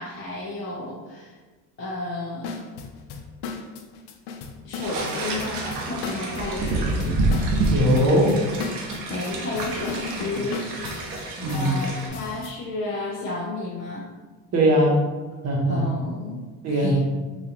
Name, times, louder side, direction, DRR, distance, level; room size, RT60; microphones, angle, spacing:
voice 1, 0.0-1.4 1.8-2.5 4.6-7.3 9.1-10.6 11.5-14.1 15.7-17.0, left 2 dB, 30° left, -6 dB, 0.6 m, -32 dB
sound 1, 2.4-12.6, left 5 dB, 80° left, 0.6 m, -36 dB
sound 2, 4.8-12.1, right 2 dB, 85° right, 0.8 m, -28 dB
voice 2, 7.7-8.3 11.4-11.8 14.5-15.0 15.4-15.8 16.6-17.0, equal, 40° right, -1 dB, 0.9 m, -20 dB
3.9 x 2.5 x 2.9 m, 1.3 s
cardioid pair, 125°, 39 cm